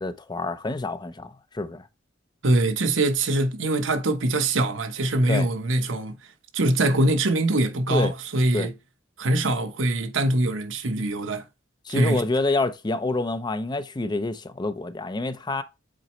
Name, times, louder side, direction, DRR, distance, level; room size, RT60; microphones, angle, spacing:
voice 1, 0.0-1.9 5.3-5.5 7.9-8.1 8.5-8.7 11.9-15.6, left 2 dB, 25° left, 0.5 m, -27 dB
voice 2, 2.4-6.2 6.5-8.7 9.2-11.5 11.9-12.2, right 2 dB, 80° right, 1.0 m, -23 dB
7.7 x 4.1 x 3.0 m
head